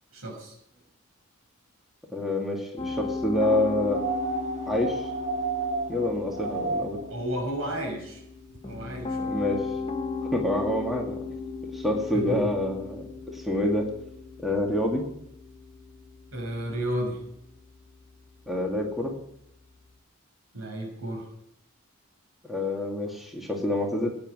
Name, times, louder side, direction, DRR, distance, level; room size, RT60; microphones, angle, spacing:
voice 1, 0.1-0.6 7.1-8.2 8.6-9.3 12.1-12.5 16.3-17.2 20.5-21.3, equal, 80° right, 1 dB, 5.9 m, -32 dB
voice 2, 2.1-4.1 4.7-5.1 5.9-7.0 9.2-9.7 10.3-11.2 11.7-13.9 14.4-15.1 18.5-19.1 22.5-24.1, left 1 dB, ahead, 0 dB, 2.2 m, -27 dB
Piano, 2.8-19.9, left 4 dB, 25° left, 1.0 m, -37 dB
sound 1, 3.9-7.1 8.5-8.6, right 3 dB, 35° right, 1.5 m, -31 dB
15.5 x 9.6 x 6.2 m, 0.74 s
head